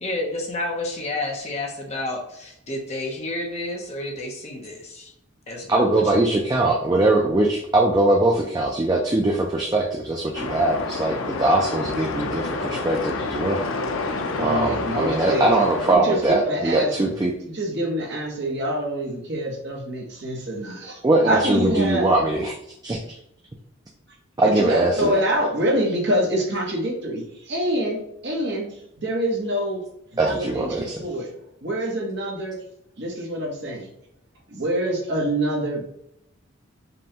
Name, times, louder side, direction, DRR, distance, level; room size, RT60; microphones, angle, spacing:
voice 1, 0.0-5.1 5.5-6.2, left 2 dB, 30° left, 0 dB, 0.7 m, -30 dB
voice 2, 5.7-13.6 14.4-17.3 21.0-22.5 22.8-23.2 24.4-25.1 30.2-31.0, right 2 dB, 20° right, 0 dB, 0.3 m, -21 dB
sound 1, 10.3-16.0, left 3 dB, 75° left, 0.5 m, -29 dB
voice 3, 14.4-15.5 15.9-17.1 17.5-21.0 21.2-22.1 24.4-29.8 30.2-31.3 31.6-32.6 33.0-33.9 34.5-35.8, equal, 50° right, -1 dB, 0.9 m, -26 dB
5.3 x 2.2 x 2.8 m, 0.77 s
head